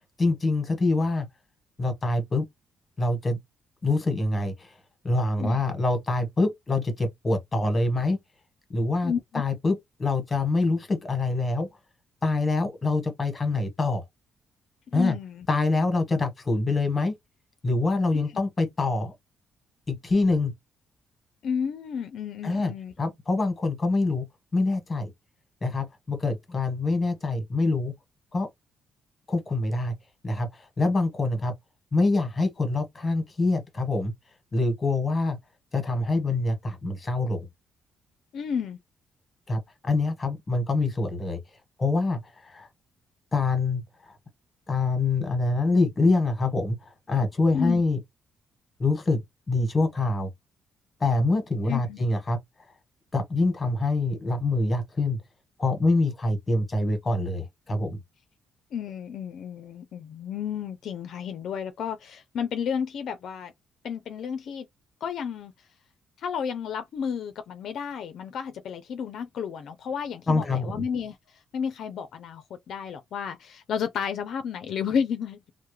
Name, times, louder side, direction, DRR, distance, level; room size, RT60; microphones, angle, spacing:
voice 1, 0.2-1.3 1.8-2.4 3.0-3.4 3.8-4.7 5.0-8.2 8.7-11.7 12.2-14.0 14.9-15.1 15.5-17.1 17.6-19.1 19.9-20.5 22.4-22.7 23.0-24.2 24.5-25.1 25.6-27.9 28.3-28.5 29.3-29.9 30.2-31.5 31.9-34.1 34.5-35.4 35.7-37.4 39.5-41.4 41.8-42.7 43.3-44.1 44.7-48.0 48.8-49.2 49.5-50.3 51.0-52.4 53.1-55.2 55.6-58.0 70.3-70.8, left 2 dB, 30° left, 1.2 m, -25 dB
voice 2, 9.0-9.4 14.9-15.5 18.1-18.3 21.4-22.9 38.3-38.8 47.5-47.8 51.7-52.0 58.7-63.5 63.8-64.7 65.0-65.5 66.2-75.5, left 7 dB, 70° left, 0.4 m, -32 dB
2.2 x 2.0 x 3.1 m
cardioid pair, 90°, 0 cm